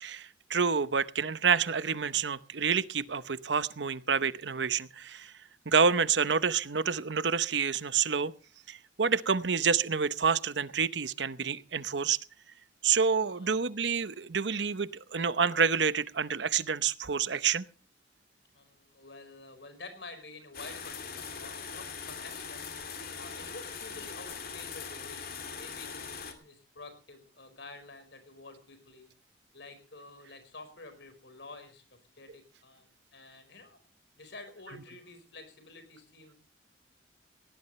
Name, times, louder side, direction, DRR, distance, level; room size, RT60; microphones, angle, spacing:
voice 1, 0.0-5.3 5.7-8.3 8.7-12.2 12.8-17.6, right 6 dB, 75° right, 15 dB, 0.8 m, -28 dB
voice 2, 18.5-22.7 23.1-29.1 29.5-31.8 32.2-33.8 34.2-36.4, left 3 dB, 70° left, 9 dB, 5.0 m, -49 dB
sound 1, 20.5-26.3, left 6 dB, 50° left, 2.6 m, -41 dB
19.0 x 18.0 x 3.2 m, 0.36 s
head